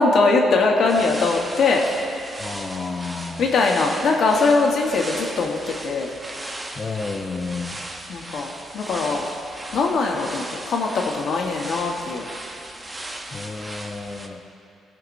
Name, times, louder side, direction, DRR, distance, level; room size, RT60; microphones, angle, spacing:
voice 1, 0.0-1.8 3.4-6.1 8.1-9.3 9.7-12.2, left 3 dB, 65° left, 0 dB, 1.1 m, -21 dB
sound 1, 0.9-14.3, right 1 dB, 20° right, 0.7 m, -36 dB
voice 2, 2.4-3.4 6.8-7.8 13.3-14.4, left 4 dB, 35° left, 5 dB, 0.6 m, -31 dB
17.0 x 5.9 x 2.6 m, 2.8 s
cardioid pair, 90°, 0 cm